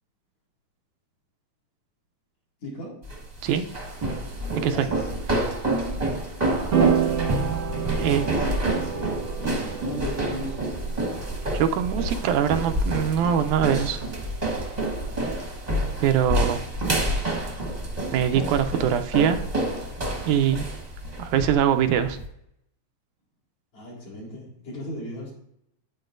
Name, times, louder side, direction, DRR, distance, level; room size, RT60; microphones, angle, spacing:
voice 1, 2.6-3.0 4.7-5.0 7.7-10.7 23.7-25.3, equal, 75° left, -5 dB, 5.2 m, -36 dB
sound 1, 3.0-22.3, right 1 dB, 25° right, 1.0 m, -28 dB
voice 2, 4.6-4.9 8.0-8.3 11.5-14.0 16.0-16.6 18.1-19.4 20.3-20.8 21.2-22.2, right 9 dB, 85° right, 7 dB, 2.1 m, -23 dB
sound 2, 6.7-15.1, right 8 dB, 45° right, 1.1 m, -30 dB
9.8 x 9.1 x 2.6 m, 0.75 s
omnidirectional pair, 3.4 m